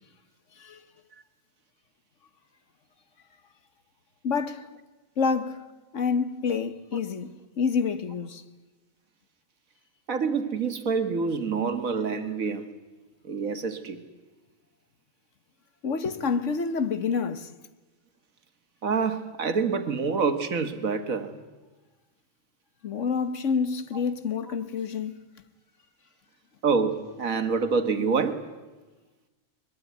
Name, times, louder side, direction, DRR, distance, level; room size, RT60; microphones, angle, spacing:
voice 1, 4.2-4.7 5.2-5.6 5.9-8.4 15.8-17.5 22.8-25.2, left 5 dB, 65° left, 1.5 m, -28 dB
voice 2, 10.1-12.7 13.3-14.0 18.8-21.4 26.6-28.4, right 5 dB, 80° right, 2.0 m, -27 dB
21.5 x 21.5 x 9.3 m
omnidirectional pair, 1.4 m